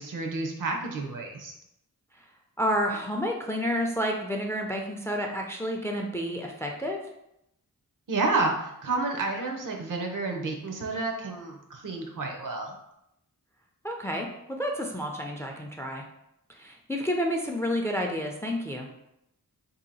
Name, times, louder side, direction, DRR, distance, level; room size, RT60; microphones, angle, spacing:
voice 1, 0.0-1.5 8.1-12.7, right 3 dB, 65° right, 2 dB, 0.7 m, -30 dB
voice 2, 2.6-7.0 13.8-16.0 16.5-18.9, equal, 10° left, 1 dB, 0.4 m, -30 dB
2.8 x 2.7 x 4.0 m, 0.82 s
wide cardioid pair, 100°, 35 cm